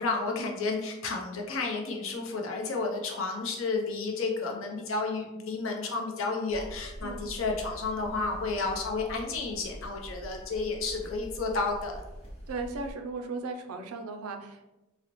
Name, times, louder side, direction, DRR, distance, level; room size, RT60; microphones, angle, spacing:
voice 1, 0.0-12.0, left 3 dB, 65° left, 1 dB, 0.6 m, -31 dB
sound 1, 6.5-12.9, equal, 30° left, 0.9 m, -44 dB
voice 2, 12.5-14.7, right 3 dB, 85° right, 5 dB, 0.4 m, -36 dB
3.8 x 2.0 x 3.0 m, 0.99 s
head